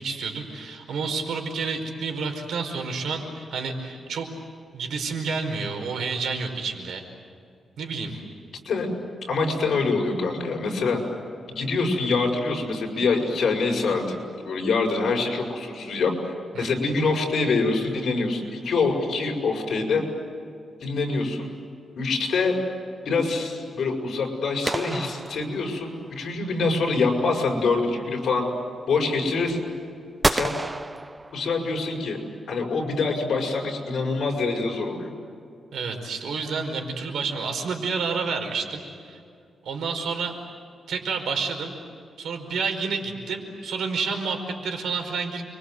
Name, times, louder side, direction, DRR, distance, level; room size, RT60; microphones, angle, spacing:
voice 1, 0.0-4.4 4.7-7.0 7.8-8.1 16.5-16.7 35.7-39.2 39.6-40.3 40.9-41.7 42.2-45.4, right 4 dB, 80° right, 4 dB, 5.0 m, -29 dB
voice 2, 9.3-11.0 11.5-14.2 14.4-16.1 16.6-20.1 20.8-21.5 22.0-22.6 23.0-28.4 28.9-29.6 30.3-30.6 31.3-32.2 32.5-35.1, left 3 dB, 60° left, 1 dB, 6.7 m, -25 dB
sound 1, 24.6-26.1 30.2-31.8, right 2 dB, 15° right, 0.7 m, -29 dB
30.0 x 24.0 x 8.0 m, 2.4 s
wide cardioid pair, 125°, 0 cm